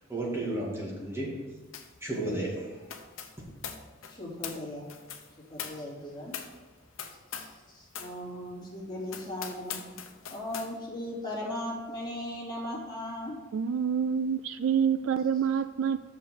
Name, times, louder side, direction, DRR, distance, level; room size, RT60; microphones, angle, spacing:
voice 1, 0.1-1.3 2.0-2.8, right 1 dB, 15° right, -4 dB, 2.3 m, -33 dB
sound 1, 1.7-2.0 2.3-7.6 7.9-8.2 8.6-8.7 9.1-10.7, left 8 dB, 85° left, 0.9 m, -42 dB
voice 2, 4.1-4.9 5.5-6.3 7.4-7.5 7.7-9.9 10.3-13.4, left 1 dB, 20° left, -5 dB, 2.9 m, -37 dB
voice 3, 13.5-16.0, right 7 dB, 75° right, 12 dB, 0.3 m, -27 dB
6.8 x 5.5 x 6.9 m, 1.2 s
head